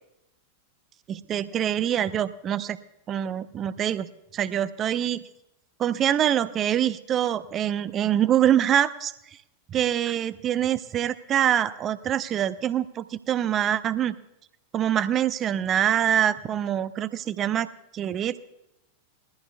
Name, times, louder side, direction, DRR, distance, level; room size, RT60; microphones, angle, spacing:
voice 1, 1.1-2.8 3.1-5.2 5.8-9.1 9.7-14.1 14.7-17.7 17.9-18.5, right 10 dB, 30° right, 14 dB, 0.7 m, -25 dB
21.5 x 14.5 x 2.3 m, 0.87 s
figure-of-eight pair, 90°, 0 cm